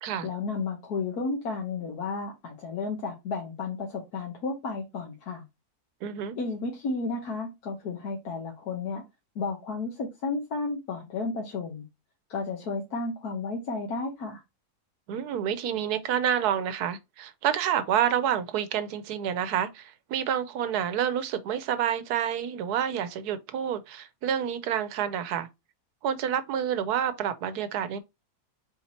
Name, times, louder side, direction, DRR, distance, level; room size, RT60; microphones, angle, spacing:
voice 1, 0.2-5.4 6.4-9.0 9.3-11.8 12.3-14.4, left 4 dB, 75° left, 1.5 m, -32 dB
voice 2, 6.0-6.4 15.1-25.5 26.0-28.0, right 9 dB, 85° right, 1.2 m, -28 dB
4.4 x 2.8 x 4.3 m
omnidirectional pair, 1.6 m